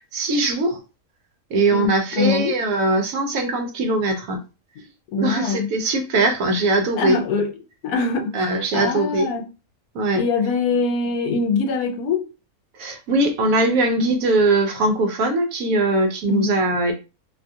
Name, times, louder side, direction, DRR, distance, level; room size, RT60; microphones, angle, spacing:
voice 1, 0.1-0.8 1.5-4.4 5.2-7.2 8.3-9.3 9.9-10.2 12.8-16.9, right 2 dB, 70° right, 0.9 m, -21 dB
voice 2, 1.7-2.5 4.8-5.7 7.0-7.5 7.8-9.5 10.2-12.3 16.3-16.5, left 4 dB, 80° left, 1.1 m, -23 dB
2.7 x 2.3 x 2.6 m
omnidirectional pair, 1.6 m